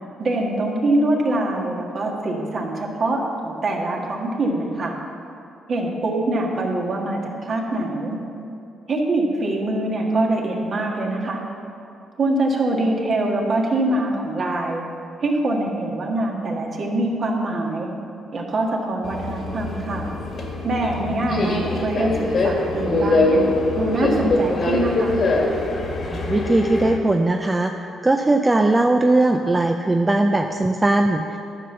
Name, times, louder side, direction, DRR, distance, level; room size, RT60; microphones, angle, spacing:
voice 1, 0.2-5.0 5.7-8.2 8.9-11.4 12.2-14.8 15.2-17.9 18.3-20.1 20.6-23.4 23.7-25.2, right 2 dB, 50° right, 0 dB, 1.6 m, -24 dB
Subway metro underground, 19.0-27.0, left 2 dB, 50° left, 1.6 m, -23 dB
voice 2, 26.3-31.4, right 2 dB, 20° right, 4 dB, 0.4 m, -19 dB
11.0 x 5.3 x 6.8 m, 2.7 s
cardioid pair, 90°, 0 cm